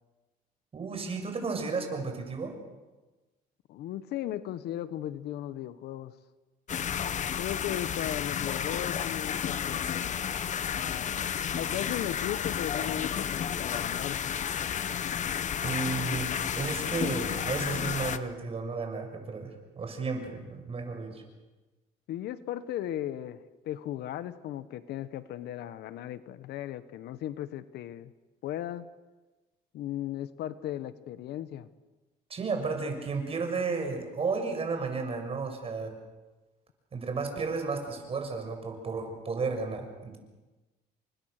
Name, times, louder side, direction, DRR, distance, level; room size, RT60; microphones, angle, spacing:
voice 1, 0.7-2.6 15.6-16.3 16.6-21.2 32.3-35.9 36.9-40.2, right 4 dB, 35° right, 4 dB, 6.5 m, -33 dB
voice 2, 3.7-6.2 7.4-10.2 10.7-11.2 11.6-14.2 22.1-23.4 23.6-28.1 28.4-28.9 29.7-31.7, left 12 dB, 75° left, 14 dB, 1.3 m, -36 dB
Nolde Forest - Water In Spring House, 6.7-18.2, left 8 dB, 45° left, 1.2 m, -32 dB
29.5 x 25.0 x 6.7 m, 1.2 s
cardioid pair, 110°, 17 cm